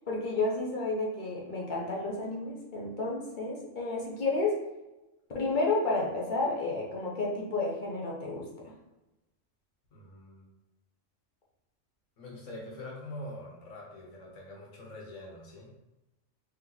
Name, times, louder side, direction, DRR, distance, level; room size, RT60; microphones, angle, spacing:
voice 1, 0.1-4.6 5.3-8.5, left 3 dB, 45° left, -3 dB, 0.9 m, -31 dB
voice 2, 9.9-10.5 12.2-15.7, left 1 dB, 70° left, -2 dB, 1.4 m, -44 dB
3.4 x 3.0 x 3.8 m, 1.0 s
omnidirectional pair, 1.3 m